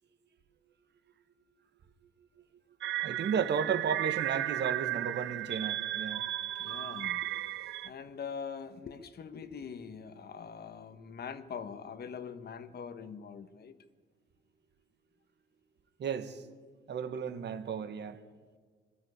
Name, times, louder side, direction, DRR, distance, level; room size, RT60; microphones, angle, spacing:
sound 1, 2.8-7.9, right 14 dB, 80° right, 0.6 m, -34 dB
voice 1, 3.0-6.3 16.0-16.5 16.9-18.2, right 7 dB, 60° right, 1.6 m, -34 dB
voice 2, 6.5-13.7, left 6 dB, 55° left, 1.4 m, -43 dB
21.5 x 13.0 x 9.7 m
cardioid pair, 90°, 20 cm